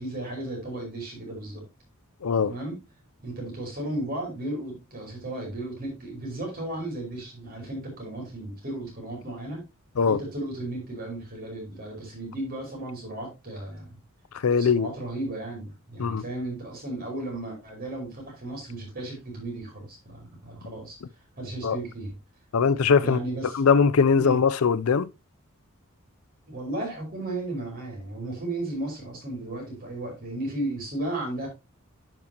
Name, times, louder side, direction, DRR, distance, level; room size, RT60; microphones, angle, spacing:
voice 1, 0.0-1.6 2.4-2.8 3.2-9.6 10.0-13.9 14.6-21.0 21.4-22.1 23.0-23.6 24.1-24.4 26.5-31.5, right 1 dB, 45° right, 5.3 m, -34 dB
voice 2, 14.4-14.9 16.0-16.2 21.6-21.8 22.5-23.2 23.5-25.1, left 5 dB, 75° left, 0.5 m, -21 dB
10.0 x 6.2 x 2.9 m
head